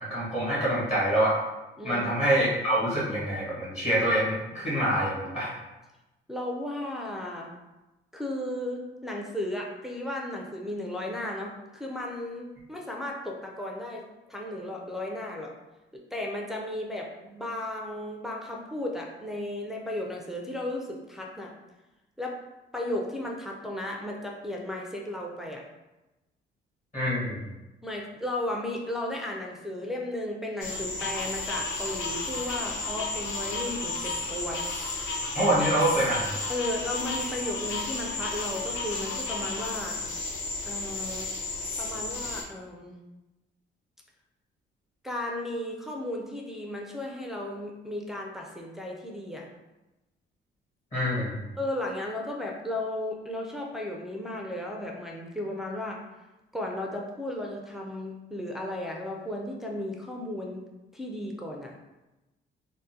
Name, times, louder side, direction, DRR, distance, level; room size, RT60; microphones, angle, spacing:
voice 1, 0.0-1.3 1.8-5.5 26.9-27.4 35.3-36.3 50.9-51.5, right 1 dB, 35° left, -8 dB, 1.4 m, -26 dB
voice 2, 6.3-7.5 8.1-14.0 14.3-15.5 15.9-21.5 22.2-22.4 22.7-25.6 27.8-34.6 34.9-35.1 36.5-40.0 40.7-41.3 41.8-43.0 45.0-49.5 51.6-56.0 56.5-60.6 60.9-61.7, left 1 dB, ahead, -1 dB, 0.4 m, -35 dB
sound 1, 30.6-42.4, left 3 dB, 90° left, 0.6 m, -33 dB
3.6 x 2.1 x 2.7 m, 1.0 s
cardioid pair, 90°, 20 cm